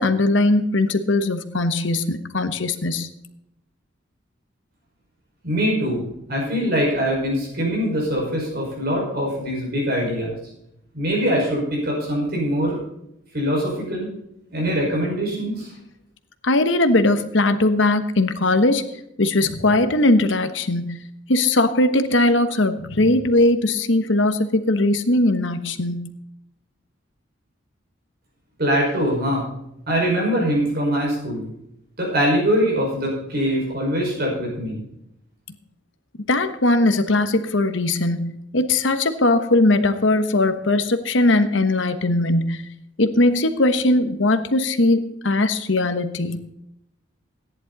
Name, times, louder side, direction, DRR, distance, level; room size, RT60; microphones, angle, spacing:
voice 1, 0.0-3.1 16.4-18.8 19.2-21.0 21.3-26.1 36.3-42.6 43.0-46.4, left 2 dB, 70° left, 9 dB, 1.2 m, -19 dB
voice 2, 5.4-6.0 6.3-10.3 10.9-12.8 13.3-14.1 14.5-15.7 28.6-29.5 29.9-31.5 32.0-34.8, equal, 50° right, -2 dB, 5.5 m, -23 dB
14.5 x 10.5 x 4.1 m, 0.81 s
head